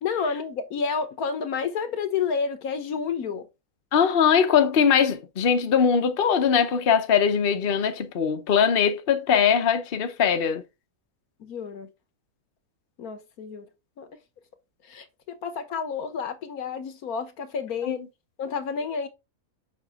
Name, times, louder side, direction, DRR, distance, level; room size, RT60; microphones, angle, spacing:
voice 1, 0.0-3.5 11.4-11.9 13.0-13.6 14.0-14.1 14.9-18.0 18.4-19.1, left 5 dB, 75° left, 1.5 m, -30 dB
voice 2, 3.9-10.6 17.8-18.0, left 7 dB, 45° left, 1.0 m, -21 dB
7.1 x 5.2 x 3.6 m
omnidirectional pair, 1.6 m